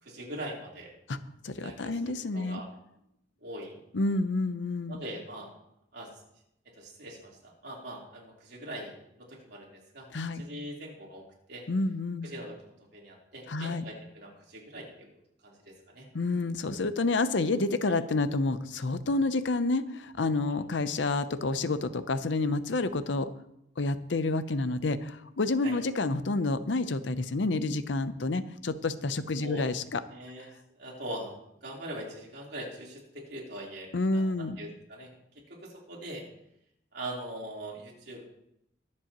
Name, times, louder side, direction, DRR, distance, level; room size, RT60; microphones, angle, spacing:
voice 1, 0.0-0.9 1.6-2.7 3.4-3.8 4.9-5.5 5.9-6.1 6.8-11.2 11.5-11.6 12.2-15.1 15.4-16.1 17.8-17.9 25.6-25.8 29.4-29.8 30.1-30.5 30.7-31.3 31.6-35.1 35.4-36.2 36.9-38.2, right 1 dB, 60° right, -3 dB, 3.7 m, -42 dB
voice 2, 1.4-2.6 3.9-5.0 10.1-10.4 11.7-12.3 13.5-13.8 16.1-23.3 23.8-30.0 33.9-34.6, left 3 dB, 70° left, 12 dB, 0.7 m, -29 dB
22.5 x 7.6 x 3.0 m, 0.79 s
head